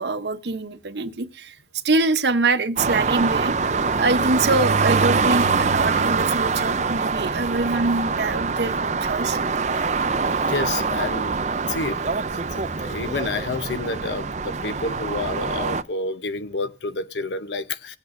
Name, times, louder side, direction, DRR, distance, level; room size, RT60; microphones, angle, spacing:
voice 1, 0.0-1.6 1.8-9.4, right 3 dB, 80° right, 0.9 m, -24 dB
sound 1, 2.8-15.8, right 4 dB, 40° right, 0.5 m, -24 dB
voice 2, 9.6-18.0, left 3 dB, 85° left, 0.8 m, -30 dB
20.0 x 8.2 x 2.5 m
head